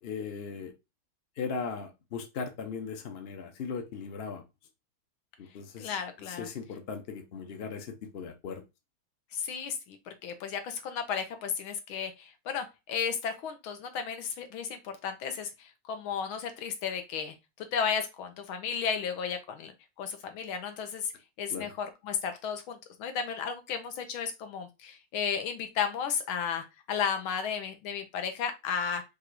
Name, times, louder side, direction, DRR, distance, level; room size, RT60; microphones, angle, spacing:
voice 1, 0.0-0.7 1.4-4.4 5.4-6.0 6.3-8.6 21.5-21.7, left 5 dB, 65° left, 0.6 m, -38 dB
voice 2, 5.8-6.5 9.3-19.7 20.0-21.1 21.4-29.0, left 7 dB, 90° left, 1.7 m, -34 dB
4.6 x 2.5 x 4.7 m
omnidirectional pair, 2.2 m